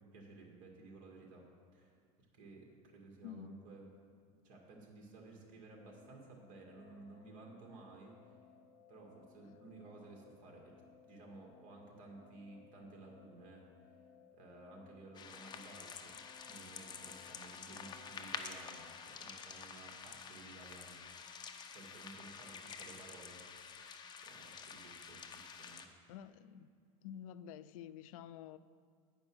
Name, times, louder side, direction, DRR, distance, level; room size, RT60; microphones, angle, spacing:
voice 1, 0.0-1.5 1.7-2.0 2.4-3.9 4.4-8.3 8.9-10.7 11.1-14.0 14.3-16.2 16.4-21.0 21.7-23.4 24.2-25.9, right 3 dB, 50° right, 0 dB, 2.1 m, -55 dB
voice 2, 3.2-3.6 26.1-26.7 27.0-28.6, left 9 dB, 85° left, 14 dB, 0.4 m, -49 dB
sound 1, 5.7-19.1, left 7 dB, 60° left, 0.8 m, -63 dB
sound 2, 15.1-25.9, left 6 dB, 25° left, 0.6 m, -49 dB
9.7 x 5.3 x 6.1 m, 2.1 s
supercardioid pair, 130°, 17 cm